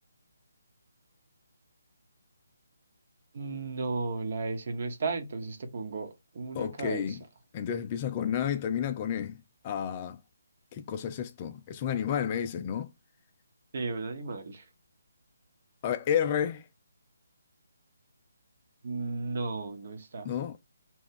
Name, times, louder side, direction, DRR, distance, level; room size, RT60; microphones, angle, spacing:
voice 1, 3.3-7.2 13.7-14.6 18.8-20.3, right 3 dB, 45° right, 0.9 m, -34 dB
voice 2, 6.5-7.2 7.5-9.4 9.6-10.2 10.7-12.9 15.8-16.7 20.2-20.6, left 8 dB, 30° left, 0.4 m, -31 dB
2.9 x 2.2 x 3.6 m
figure-of-eight pair, 145°, 0 cm